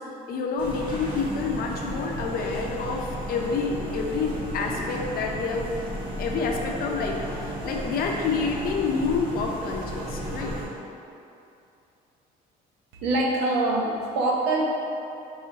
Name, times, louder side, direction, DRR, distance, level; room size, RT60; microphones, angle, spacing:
voice 1, 0.0-5.7 6.2-10.6, left 4 dB, 60° left, 0 dB, 0.5 m, -28 dB
sound 1, 0.6-10.6, equal, 30° right, 1.3 m, -34 dB
voice 2, 12.9-14.6, right 2 dB, 85° right, -2 dB, 0.7 m, -24 dB
4.8 x 2.8 x 3.7 m, 2.7 s
cardioid pair, 110°, 17 cm